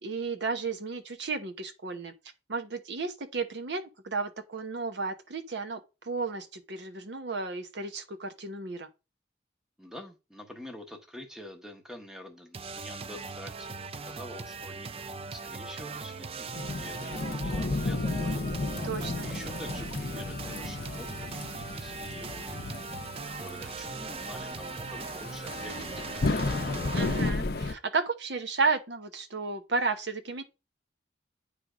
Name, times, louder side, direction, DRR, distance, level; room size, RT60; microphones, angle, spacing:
voice 1, 0.0-2.1 2.5-8.9 18.8-19.3 26.9-30.4, right 4 dB, 70° right, 0.9 m, -33 dB
voice 2, 9.8-13.7 14.1-18.6 19.2-22.7 23.3-26.6, left 1 dB, 5° right, 0.9 m, -47 dB
sound 1, 12.5-27.3, right 4 dB, 30° right, 0.3 m, -39 dB
Thunderstorm / Rain, 16.5-27.7, left 3 dB, 55° left, 0.6 m, -33 dB
9.3 x 3.4 x 4.9 m
head